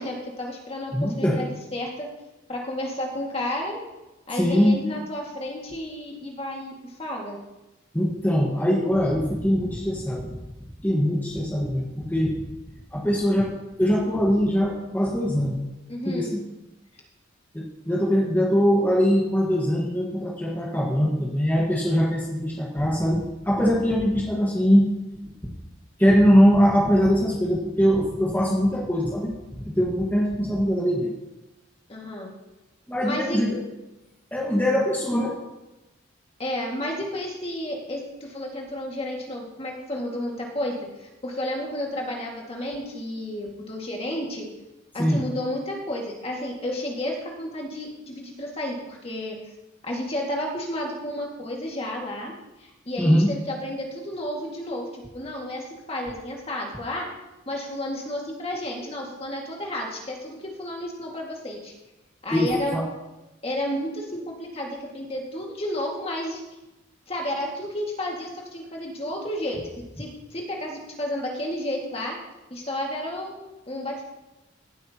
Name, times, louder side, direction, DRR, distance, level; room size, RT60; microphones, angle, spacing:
voice 1, 0.0-2.1 2.5-3.8 4.3-7.4 15.9-16.3 31.9-32.3 33.0-33.4 36.4-44.5 44.9-49.4 49.8-52.3 52.6-57.1 57.5-61.7 62.2-62.8 63.4-66.4 67.1-72.2 72.5-73.4 73.7-74.1, left 1 dB, 30° left, -1 dB, 2.0 m, -32 dB
voice 2, 0.9-1.4 4.3-4.8 7.9-10.3 10.8-12.3 12.9-13.5 13.8-15.6 16.0-16.4 17.5-24.9 26.0-31.1 32.9-33.6 34.3-35.4 45.0-45.2 53.0-53.3 62.3-62.8, equal, 10° left, -4 dB, 1.5 m, -22 dB
17.0 x 8.2 x 2.9 m, 1.0 s
head